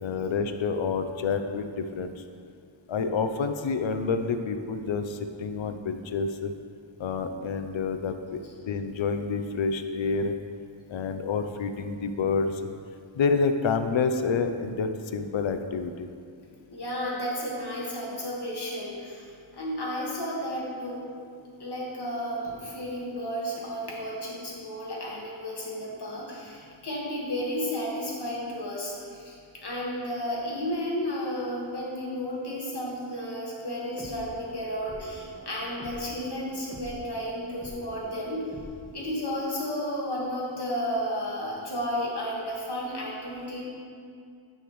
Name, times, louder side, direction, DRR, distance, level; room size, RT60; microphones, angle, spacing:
voice 1, 0.0-2.1 2.9-6.5 7.0-8.4 8.7-10.3 10.9-12.6 13.1-16.1, left 4 dB, 70° left, 8 dB, 0.6 m, -28 dB
voice 2, 16.7-19.3 19.5-21.1 21.6-38.5 38.9-43.6, equal, 55° left, -4 dB, 1.7 m, -33 dB
sound 1, 33.9-38.9, equal, 5° right, 1.8 m, -46 dB
10.0 x 5.7 x 3.1 m, 2.3 s
wide cardioid pair, 90°, 48 cm